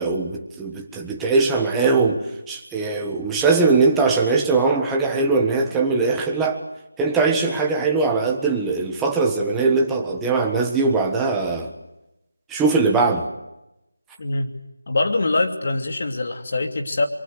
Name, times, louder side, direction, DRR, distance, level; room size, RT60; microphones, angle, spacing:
voice 1, 0.0-6.6 7.0-11.7 12.5-13.3, right 4 dB, 5° right, 1.5 m, -21 dB
voice 2, 14.2-14.6 14.9-17.1, left 2 dB, 45° left, 2.8 m, -23 dB
27.0 x 23.5 x 6.5 m
figure-of-eight pair, 175°, 0 cm